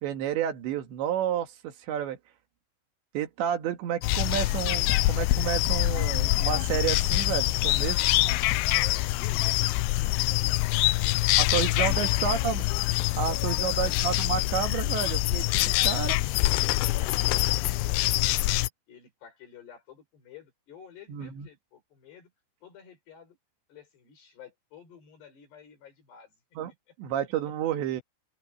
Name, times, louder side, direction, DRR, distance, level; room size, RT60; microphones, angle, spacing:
voice 1, 0.0-2.2 3.1-8.1 11.4-12.7 13.2-16.2 21.1-21.5 26.6-26.7 27.0-28.0, right 10 dB, 80° right, 4.2 m, -30 dB
sound 1, 4.0-18.7, left 18 dB, 85° left, 2.2 m, -25 dB
voice 2, 8.7-11.5 11.8-12.3 13.3-13.9 15.5-15.9 16.4-22.3 22.6-23.4 23.7-26.4 27.5-27.6, left 8 dB, 65° left, 7.5 m, -51 dB
open air
omnidirectional pair, 5.2 m